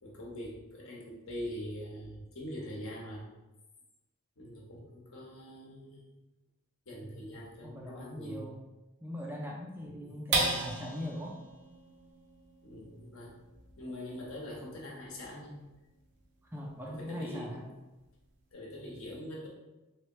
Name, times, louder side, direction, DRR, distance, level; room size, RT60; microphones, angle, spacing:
voice 1, 0.0-3.2 4.4-6.1 6.9-8.4 9.8-10.1 12.6-13.3 13.8-15.6 16.8-17.6 18.5-19.5, equal, 70° left, -4 dB, 1.1 m, -43 dB
voice 2, 6.9-8.6 9.0-11.4 16.4-17.6, equal, 10° right, -1 dB, 0.3 m, -41 dB
sound 1, 10.3-17.0 17.5-17.6 18.0-18.5, right 3 dB, 55° right, 0.6 m, -38 dB
3.5 x 3.2 x 3.0 m, 1.1 s
head